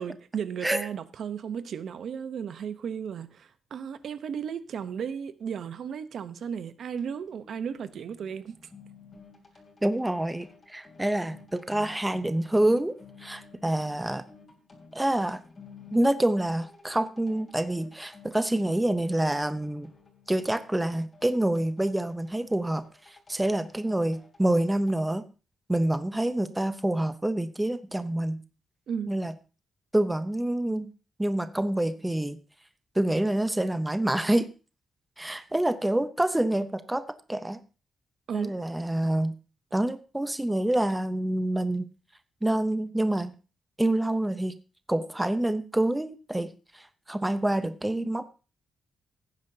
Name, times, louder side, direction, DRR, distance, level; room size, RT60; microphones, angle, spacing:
voice 1, 0.0-8.5 28.9-29.2 38.3-38.5, right 7 dB, 60° right, 0.8 m, -35 dB
sound 1, 6.9-25.0, left 4 dB, 30° left, 2.9 m, -54 dB
voice 2, 9.8-14.2 14.9-15.4 15.9-19.9 20.3-25.2 25.7-28.4 29.1-29.3 29.9-30.9 31.2-32.4 33.0-34.5 35.2-37.6 38.3-39.3 39.7-41.9 42.4-43.3 43.8-44.6 44.9-48.3, right 1 dB, 10° right, 0.6 m, -27 dB
17.0 x 9.4 x 2.7 m
wide cardioid pair, 170°, 0 cm